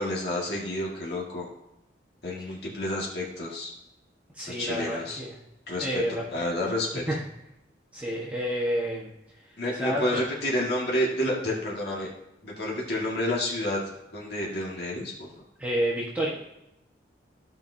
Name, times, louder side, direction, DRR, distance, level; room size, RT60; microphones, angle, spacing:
voice 1, 0.0-1.5 2.2-3.7 4.5-5.2 5.7-7.0 9.6-12.1 12.4-13.8 14.1-15.3, left 1 dB, 60° left, -3 dB, 1.9 m, -29 dB
voice 2, 4.3-5.3 5.8-6.2 7.1-7.2 7.9-9.1 9.8-10.2 15.6-16.3, equal, 10° right, -6 dB, 1.3 m, -29 dB
15.0 x 5.3 x 2.7 m, 0.88 s
head